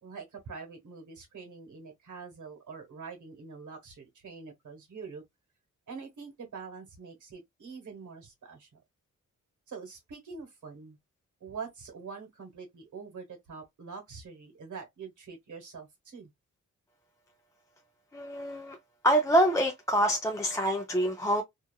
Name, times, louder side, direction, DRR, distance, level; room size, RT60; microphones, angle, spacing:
voice 1, 0.0-5.2 5.9-8.8 9.7-11.0 11.4-16.3, right 5 dB, 80° right, 1.2 m, -45 dB
voice 2, 18.1-18.8 19.0-21.4, equal, 10° left, 0.3 m, -26 dB
2.8 x 2.4 x 2.2 m
wide cardioid pair, 145°, 30 cm